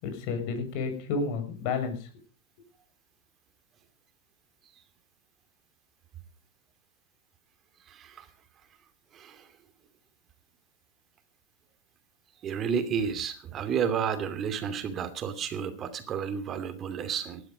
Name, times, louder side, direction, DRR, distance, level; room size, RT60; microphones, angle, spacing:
voice 1, 0.0-2.1, left 4 dB, 50° left, 7 dB, 6.5 m, -31 dB
voice 2, 7.9-8.3 9.1-9.5 12.4-17.4, right 7 dB, 30° right, 11 dB, 2.7 m, -31 dB
17.5 x 12.0 x 5.2 m, 0.39 s
supercardioid pair, 140°, 0 cm